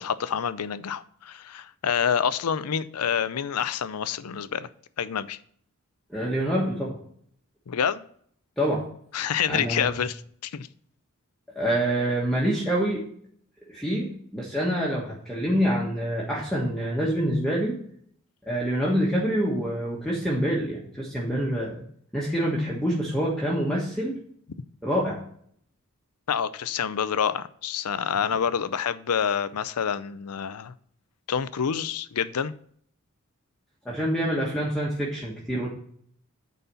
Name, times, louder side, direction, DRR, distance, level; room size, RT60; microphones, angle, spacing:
voice 1, 0.0-4.7 5.0-5.4 7.7-8.0 9.1-10.7 26.3-30.7 31.3-32.5, left 7 dB, 90° left, 0.5 m, -27 dB
voice 2, 6.1-7.0 8.6-8.8 9.5-9.9 11.5-13.0 13.7-17.8 18.5-21.8 22.1-24.2 24.8-25.2 33.8-35.7, equal, ahead, 1.4 m, -26 dB
9.2 x 4.2 x 6.8 m
head